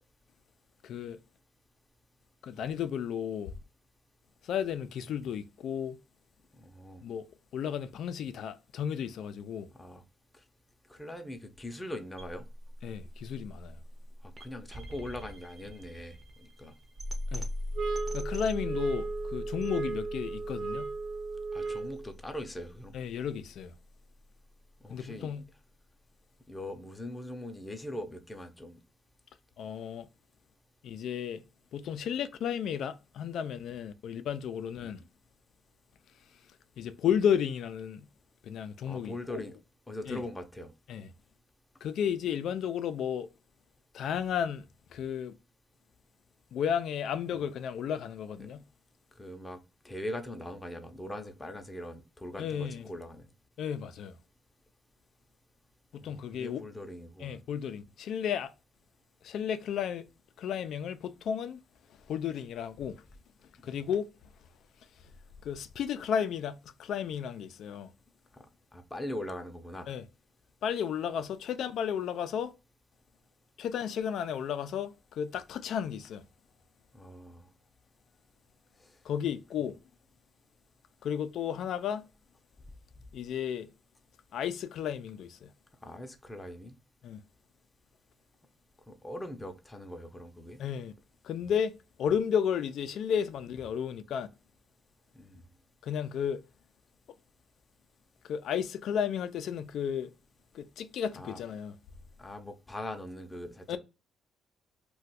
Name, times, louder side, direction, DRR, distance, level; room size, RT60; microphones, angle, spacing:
voice 1, 0.8-1.2 2.4-3.5 4.4-6.0 7.0-7.3 7.5-9.7 12.8-13.8 17.3-17.5 18.1-20.9 22.9-23.7 24.9-25.4 29.6-30.1 30.8-31.4 31.7-35.0 36.8-38.1 38.4-39.4 40.1-40.2 40.9-41.1 41.8-43.3 43.9-45.3 46.5-48.6 52.4-52.9 53.6-54.2 55.9-56.6 57.2-58.5 59.2-60.1 60.4-61.6 62.1-63.0 63.6-64.1 65.4-67.9 69.9-70.0 70.6-72.5 73.6-76.3 79.0-79.8 81.0-82.1 83.1-83.7 84.3-85.5 87.0-87.2 90.6-90.9 91.2-94.3 95.8-96.4 98.2-100.1 100.5-101.8 103.7-103.8, left 8 dB, 75° left, 0.3 m, -33 dB
voice 2, 6.6-7.0 9.8-10.0 10.9-12.5 14.4-16.7 21.5-23.0 24.8-25.3 26.5-28.8 34.8-34.9 38.8-39.6 39.9-40.7 47.3-47.5 48.4-48.5 49.2-49.6 49.8-53.3 56.0-57.3 63.6-63.7 68.3-68.4 68.7-69.9 76.9-77.5 85.8-86.7 88.9-90.6 95.2-95.4 101.1-101.4 102.2-103.8, left 1 dB, 15° left, 0.6 m, -41 dB
sound 1, 12.1-24.2, left 1 dB, 40° right, 0.7 m, -41 dB
sound 2, 17.8-22.1, right 4 dB, 70° right, 0.4 m, -35 dB
2.4 x 2.2 x 4.0 m
cardioid pair, 90°, 0 cm